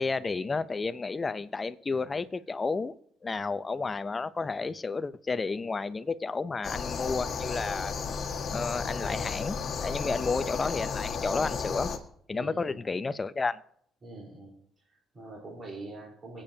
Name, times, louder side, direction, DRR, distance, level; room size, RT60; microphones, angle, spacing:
voice 1, 0.0-2.9 3.2-7.9 8.5-11.9 12.3-13.6, left 4 dB, 25° left, 14 dB, 0.6 m, -31 dB
sound 1, 6.6-12.0, left 5 dB, 50° left, 1.6 m, -33 dB
voice 2, 10.0-10.3 12.3-12.8 14.0-14.5 14.9-16.4, right 2 dB, 35° right, -2 dB, 4.0 m, -44 dB
26.0 x 8.8 x 2.8 m, 0.69 s
cardioid pair, 125°, 0 cm